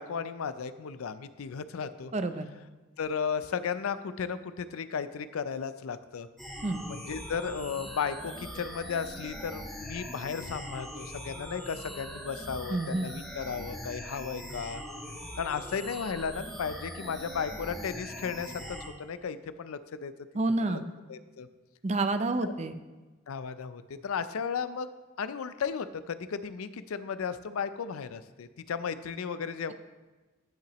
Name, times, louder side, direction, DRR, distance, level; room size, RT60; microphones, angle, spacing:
voice 1, 0.0-2.1 3.0-6.3 6.9-14.8 15.4-20.1 20.7-20.8 21.1-21.5 23.3-24.9 25.2-29.7, left 6 dB, 85° left, 13 dB, 0.4 m, -35 dB
voice 2, 2.1-2.5 6.6-6.8 12.7-13.1 20.3-20.9 21.8-22.8, right 2 dB, 30° right, 10 dB, 0.4 m, -29 dB
sound 1, 6.4-18.9, equal, ahead, 1.5 m, -41 dB
14.5 x 5.7 x 3.0 m, 1.2 s
head